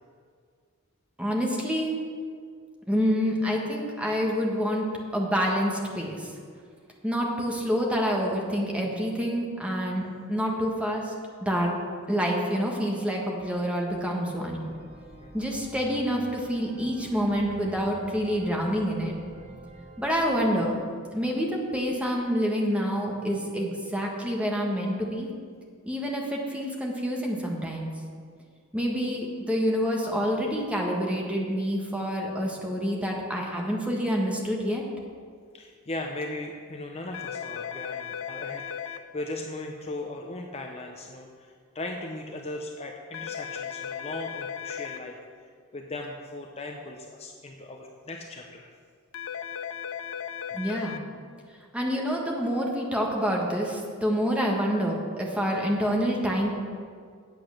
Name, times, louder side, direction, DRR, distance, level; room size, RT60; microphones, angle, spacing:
voice 1, 1.2-1.9 2.9-4.9 5.1-6.3 7.0-11.1 11.4-11.7 12.1-14.6 15.3-19.1 20.0-20.7 21.1-25.3 25.8-27.9 28.7-34.8 50.5-51.0 51.7-56.5, equal, 5° right, -1 dB, 1.4 m, -27 dB
sound 1, 14.6-20.5, right 2 dB, 25° right, 1.7 m, -47 dB
voice 2, 15.2-15.5 35.5-45.2 45.7-48.7, left 2 dB, 30° left, 2 dB, 0.6 m, -38 dB
sound 2, 37.1-39.0 43.1-45.0 49.1-51.0, left 8 dB, 75° left, 0.5 m, -36 dB
8.8 x 7.9 x 6.3 m, 2.1 s
head